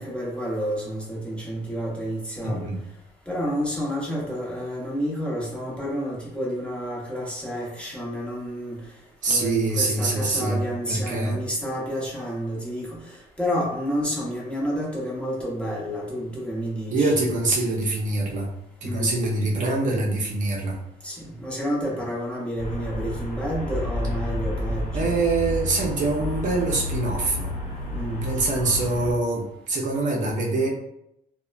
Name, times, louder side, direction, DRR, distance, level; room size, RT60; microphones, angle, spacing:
voice 1, 0.0-2.7 3.3-8.8 9.3-17.1 18.8-19.2 21.0-25.1 27.9-28.3, equal, 5° left, -5 dB, 0.8 m, -30 dB
voice 2, 2.4-2.8 9.2-10.6 10.9-11.4 16.9-18.5 18.8-20.8 24.9-27.5 28.2-30.7, right 2 dB, 50° right, -2 dB, 0.6 m, -24 dB
Traffic noise roadway noise, 22.6-29.1, left 1 dB, 40° left, 1.0 m, -30 dB
2.8 x 2.1 x 2.3 m, 0.80 s
cardioid pair, 110°, 17 cm